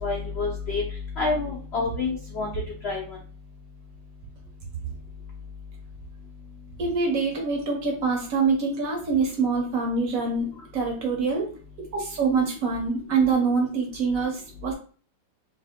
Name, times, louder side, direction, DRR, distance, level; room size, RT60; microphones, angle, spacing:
voice 1, 0.0-0.8 1.2-2.5 2.8-3.2, left 3 dB, 75° left, -1 dB, 0.6 m, -28 dB
voice 2, 6.8-10.5 10.7-11.5 11.9-14.7, right 4 dB, 60° right, 1 dB, 1.0 m, -25 dB
2.9 x 2.6 x 3.5 m, 0.41 s
omnidirectional pair, 1.9 m